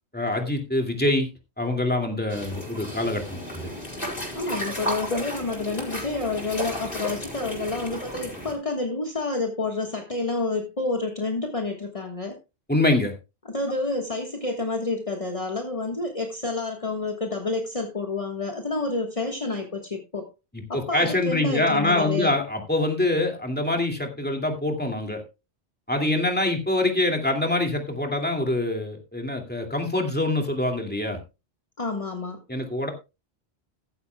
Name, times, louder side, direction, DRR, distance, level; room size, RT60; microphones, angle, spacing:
voice 1, 0.1-1.3 1.6-3.7 12.7-13.1 20.5-25.2 25.9-31.2 32.5-32.9, left 2 dB, 10° left, 3 dB, 2.4 m, -25 dB
sound 1, 2.3-8.5, equal, 55° left, 5.1 m, -33 dB
voice 2, 4.3-12.4 13.5-20.3 20.7-22.3 31.8-32.4, left 3 dB, 30° left, 2 dB, 1.6 m, -29 dB
15.0 x 12.5 x 2.3 m, 0.27 s
omnidirectional pair, 1.1 m